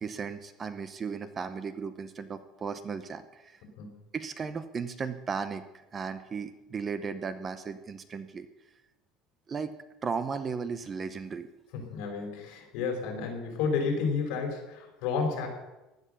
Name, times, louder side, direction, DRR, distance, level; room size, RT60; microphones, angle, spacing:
voice 1, 0.0-3.6 4.1-5.6 5.9-8.5 9.5-9.7 10.0-11.5, right 5 dB, 20° right, 12 dB, 0.7 m, -35 dB
voice 2, 11.7-15.5, left 5 dB, 60° left, 2 dB, 5.1 m, -31 dB
16.0 x 11.0 x 6.8 m, 1.0 s
cardioid pair, 170°, 0 cm